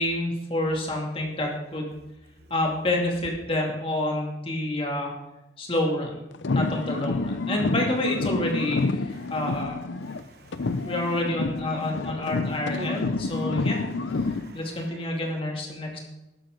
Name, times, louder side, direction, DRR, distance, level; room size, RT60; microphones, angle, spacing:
voice 1, 0.0-2.0 2.5-5.1 5.6-6.2 6.5-9.8 10.8-13.8 14.5-16.0, left 1 dB, 30° left, 0 dB, 2.6 m, -28 dB
sound 1, 6.3-10.2 10.5-14.5, left 3 dB, 70° left, 0.7 m, -28 dB
voice 2, 10.1-10.9 11.8-11.9 12.7-12.9 13.3-13.6 14.2-15.0 15.8-16.0, right 2 dB, 50° right, 6 dB, 1.3 m, -46 dB
15.5 x 12.5 x 3.9 m, 0.98 s
head